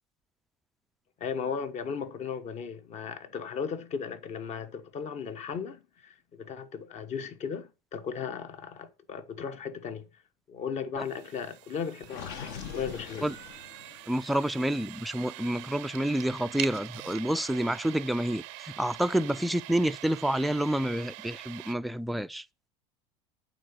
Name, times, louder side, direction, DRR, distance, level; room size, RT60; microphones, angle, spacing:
voice 1, 1.2-10.1 10.5-13.3, left 6 dB, 45° left, 1.3 m, -36 dB
sound 1, 11.0-21.7, right 21 dB, 70° right, 0.5 m, -44 dB
Gurgling, 12.0-14.2, left 7 dB, 65° left, 1.4 m, -42 dB
voice 2, 14.1-22.4, right 1 dB, ahead, 0.3 m, -29 dB
8.8 x 4.1 x 6.7 m
hypercardioid pair, 90°, 16 cm